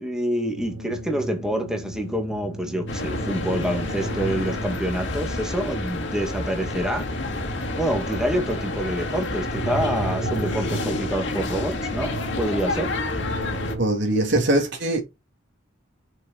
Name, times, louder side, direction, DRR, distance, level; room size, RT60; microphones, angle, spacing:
voice 1, 0.0-7.1 7.8-12.1 12.4-12.9, equal, 5° right, 1.9 m, -27 dB
sound 1, 0.5-13.9, right 1 dB, 75° right, 3.1 m, -35 dB
sound 2, 2.9-13.8, left 2 dB, 60° left, 2.3 m, -29 dB
voice 2, 13.8-15.0, right 1 dB, 60° right, 2.5 m, -21 dB
6.7 x 6.6 x 4.1 m
head